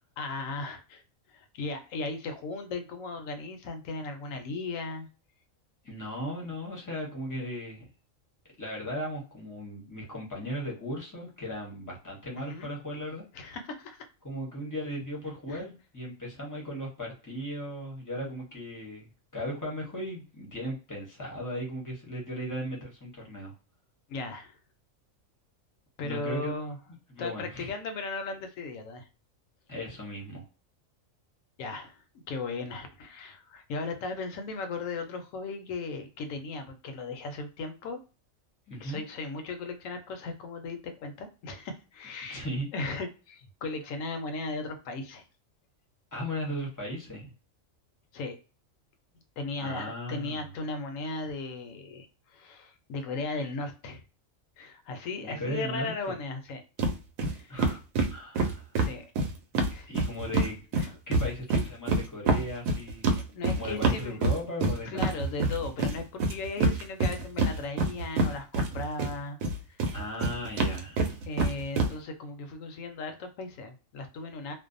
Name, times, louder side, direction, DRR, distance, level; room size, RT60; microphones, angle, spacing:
voice 1, 0.2-1.0 1.3-5.1 12.5-12.7 13.3-14.0 15.5-15.6 24.1-24.6 26.0-26.8 27.2-29.1 31.6-38.0 38.7-42.4 42.7-45.2 48.1-48.4 49.4-54.0 54.6-56.9 57.3-57.6 58.8-59.1 59.7-59.9 60.8-60.9 63.1-64.4 64.8-69.4 69.7-69.9 71.3-74.5, left 3 dB, 75° left, 6 dB, 1.0 m, -37 dB
voice 2, 5.8-7.9 8.6-13.2 14.2-23.5 26.0-26.5 27.1-27.7 29.7-30.4 38.7-39.0 42.2-42.7 46.1-47.3 49.6-50.5 55.2-56.1 57.5-57.8 58.1-58.7 59.9-60.6 61.1-63.1 63.5-65.2 69.9-71.1, equal, 20° left, -2 dB, 0.6 m, -37 dB
sound 1, 56.8-56.9 57.2-57.3 57.6-60.5 60.7-69.1 69.4-71.9, right 3 dB, 85° right, 1.0 m, -26 dB
2.5 x 2.1 x 2.5 m, 0.34 s
omnidirectional pair, 1.4 m